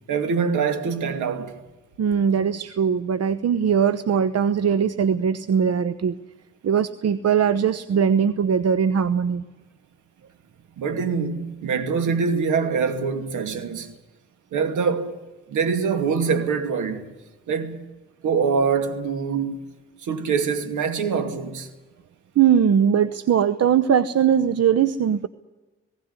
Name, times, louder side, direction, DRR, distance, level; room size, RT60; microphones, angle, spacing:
voice 1, 0.1-1.6 10.8-13.9 14.5-15.2 15.5-17.1 17.5-17.8 18.2-19.7 20.0-21.7, right 5 dB, 70° right, 2.5 m, -24 dB
voice 2, 2.0-6.2 6.6-9.4 22.4-25.3, right 8 dB, 50° right, 1.0 m, -20 dB
19.5 x 17.0 x 9.6 m
hypercardioid pair, 40°, 31 cm